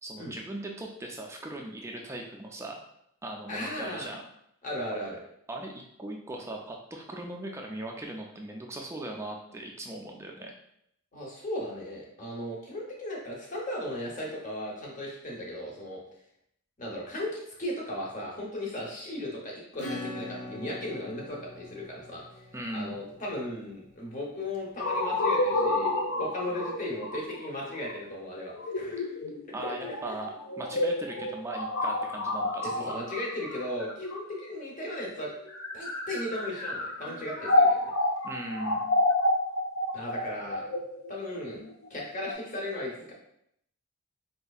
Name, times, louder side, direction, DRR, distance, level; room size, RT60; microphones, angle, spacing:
voice 1, 0.0-2.8 3.2-4.2 5.5-5.7 6.0-10.5 22.5-22.9 29.5-30.3 30.6-33.0 38.2-38.8, right 1 dB, 10° right, 1 dB, 0.3 m, -38 dB
voice 2, 3.5-4.1 4.6-5.2 11.1-16.0 16.8-22.4 22.7-25.9 26.2-29.1 29.6-30.1 32.6-35.3 35.7-37.8 39.9-40.7 41.1-41.6 41.9-43.1, left 1 dB, 35° left, -2 dB, 0.8 m, -36 dB
Acoustic guitar / Strum, 19.8-24.1, left 2 dB, 90° left, 0.9 m, -42 dB
sound 1, 24.8-34.6 35.4-42.3, left 1 dB, 65° left, 0.4 m, -29 dB
4.1 x 2.7 x 2.3 m, 0.75 s
head